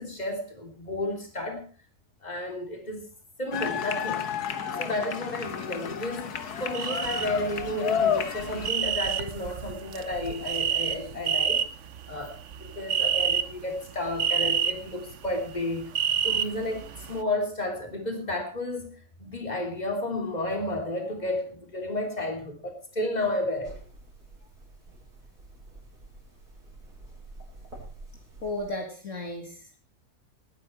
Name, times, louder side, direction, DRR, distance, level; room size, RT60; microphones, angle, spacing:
voice 1, 0.0-1.6 2.2-3.1 3.4-4.2 4.8-6.3 6.6-11.7 12.1-18.9 19.2-23.7, left 1 dB, 25° left, 3.3 m, -32 dB
sound 1, 3.5-8.7, left 7 dB, 80° left, 1.7 m, -31 dB
sound 2, 6.7-7.3 7.5-17.2, right 8 dB, 55° right, 1.1 m, -29 dB
sound 3, 23.6-28.7, right 2 dB, 80° right, 6.1 m, -48 dB
voice 2, 28.4-29.8, left 1 dB, 55° left, 2.4 m, -34 dB
19.0 x 9.8 x 4.6 m
omnidirectional pair, 1.6 m